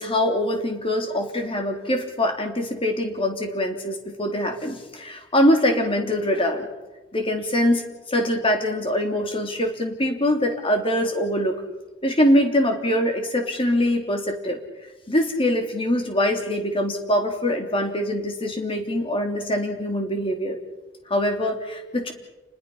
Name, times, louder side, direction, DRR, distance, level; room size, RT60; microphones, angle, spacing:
voice 1, 0.0-6.7 7.1-11.5 12.0-14.6 15.1-20.6 21.1-22.1, left 1 dB, 30° left, 3 dB, 3.3 m, -23 dB
30.0 x 20.5 x 5.6 m, 1.1 s
head